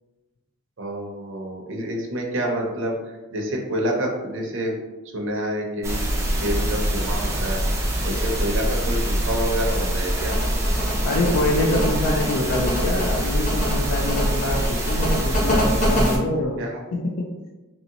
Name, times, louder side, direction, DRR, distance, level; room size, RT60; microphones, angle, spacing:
voice 1, 0.8-4.8 5.1-6.1 6.4-7.6 8.0-10.4 16.6-16.8, right 1 dB, 60° right, 0 dB, 0.6 m, -28 dB
sound 1, 5.8-16.2, equal, 15° right, 0.4 m, -24 dB
sound 2, 10.2-16.1, equal, 35° left, 1.0 m, -26 dB
voice 2, 11.0-16.6 16.9-17.3, left 1 dB, 75° left, -2 dB, 0.4 m, -25 dB
2.9 x 2.7 x 2.8 m, 1.2 s
head